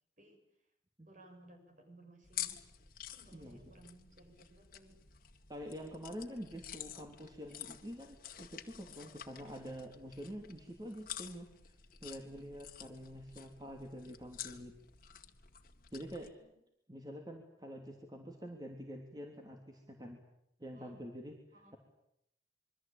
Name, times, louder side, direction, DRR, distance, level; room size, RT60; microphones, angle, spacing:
voice 1, 1.1-2.6 3.1-5.0 9.5-9.6 16.4-16.5 20.7-21.0 21.5-21.8, right 1 dB, 45° right, 5 dB, 6.9 m, -59 dB
sound 1, 2.2-16.3, left 11 dB, 50° left, 2.0 m, -49 dB
voice 2, 5.5-11.5 12.0-14.7 15.9-16.3 16.9-20.2 20.6-21.8, equal, 20° right, 2 dB, 3.2 m, -47 dB
27.0 x 23.5 x 9.0 m, 0.78 s
head